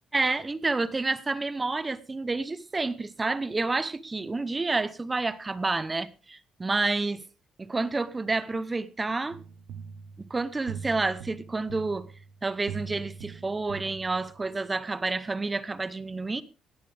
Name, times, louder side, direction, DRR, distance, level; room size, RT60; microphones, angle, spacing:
voice 1, 0.1-7.2 7.6-9.4 10.2-12.1 12.4-16.4, right 3 dB, 20° right, 0.8 m, -29 dB
sound 1, 9.3-14.6, right 6 dB, 85° right, 1.2 m, -42 dB
17.5 x 12.0 x 3.4 m
cardioid pair, 125°, 0 cm